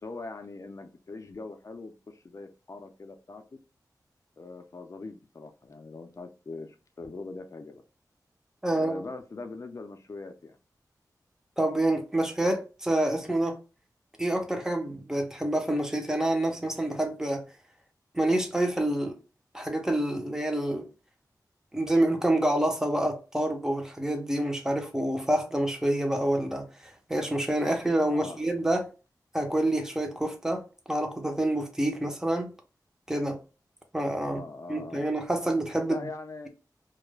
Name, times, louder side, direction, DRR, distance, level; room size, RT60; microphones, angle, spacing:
voice 1, 0.0-3.4 4.4-7.8 8.7-10.6 28.0-28.4 34.2-35.1 35.9-36.5, left 3 dB, 45° left, 0.5 m, -41 dB
voice 2, 8.6-9.0 11.6-13.6 14.2-17.4 18.1-19.2 19.5-20.9 21.7-28.9 29.3-32.5 33.1-33.4 33.9-34.4 34.7-36.1, right 1 dB, 5° right, 0.6 m, -27 dB
2.3 x 2.1 x 3.1 m
wide cardioid pair, 95°, 7 cm